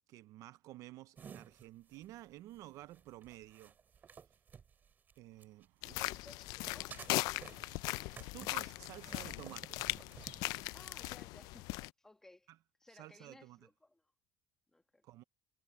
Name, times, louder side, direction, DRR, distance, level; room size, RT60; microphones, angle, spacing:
voice 1, 0.1-3.7 5.2-6.0 8.3-9.8 12.5-12.6 12.9-13.6 15.0-15.2, right 16 dB, 50° right, 0.5 m, -52 dB
sound 1, 1.2-5.7 6.0-10.7, right 7 dB, 25° right, 3.9 m, -55 dB
sound 2, 5.3-11.2, right 23 dB, 70° right, 6.4 m, -75 dB
sound 3, 5.8-11.9, left 21 dB, 65° left, 0.4 m, -39 dB
voice 2, 5.8-7.1 10.7-12.5 12.8-14.0 14.7-15.0, left 2 dB, 5° left, 1.7 m, -60 dB
cardioid pair, 165°, 7 cm